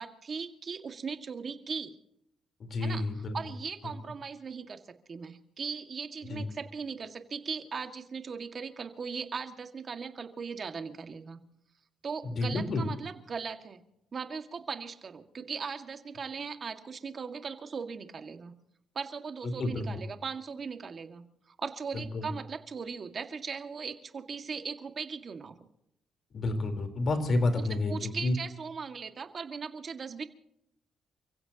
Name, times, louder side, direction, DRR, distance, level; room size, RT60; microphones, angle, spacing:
voice 1, 0.0-1.9 2.8-4.8 5.1-11.4 12.0-13.8 14.1-18.5 19.0-25.5 27.6-30.2, right 5 dB, 45° right, 6 dB, 2.0 m, -39 dB
voice 2, 2.6-3.3 6.3-6.5 12.2-12.9 19.4-19.9 21.9-22.3 26.3-28.3, left 2 dB, 50° left, 6 dB, 4.0 m, -30 dB
29.5 x 16.0 x 3.0 m, 0.79 s
cardioid pair, 90°, 0 cm